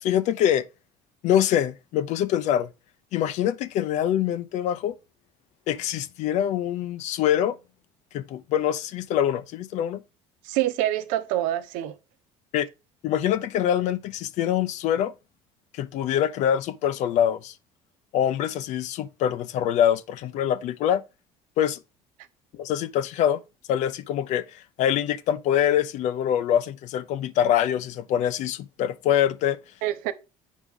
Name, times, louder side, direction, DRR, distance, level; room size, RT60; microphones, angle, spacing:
voice 1, 0.0-0.7 1.2-2.7 3.1-4.9 5.7-7.6 8.1-10.0 12.5-12.7 13.0-15.1 15.7-17.5 18.1-21.0 21.6-21.8 22.6-23.4 23.7-29.6, left 10 dB, 65° left, 0.7 m, -24 dB
voice 2, 10.4-12.0 29.8-30.1, right 14 dB, 80° right, 0.8 m, -26 dB
8.3 x 4.7 x 3.7 m
cardioid pair, 105°, 13 cm